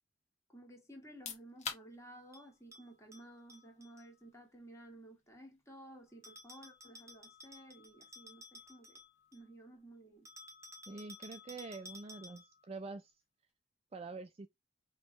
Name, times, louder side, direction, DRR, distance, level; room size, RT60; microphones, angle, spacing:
voice 1, 0.5-9.0 9.3-10.3, right 1 dB, 15° left, 1.6 m, -55 dB
sound 1, 1.0-13.7, left 6 dB, 35° left, 1.2 m, -54 dB
Bell, 2.3-4.1 6.2-9.5 10.2-12.6, left 1 dB, 15° right, 1.1 m, -55 dB
voice 2, 10.9-13.1 13.9-14.5, right 3 dB, 30° right, 0.4 m, -46 dB
5.1 x 3.1 x 2.8 m
head